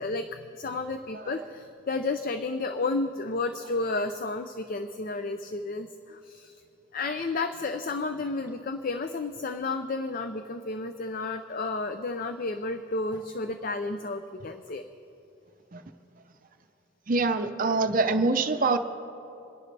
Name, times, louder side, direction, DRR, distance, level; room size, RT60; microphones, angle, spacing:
voice 1, 0.0-6.6 6.9-14.8, left 3 dB, 45° left, 8 dB, 0.5 m, -32 dB
voice 2, 17.1-18.8, right 3 dB, 45° right, 8 dB, 0.6 m, -24 dB
27.5 x 11.0 x 3.3 m, 2.9 s
head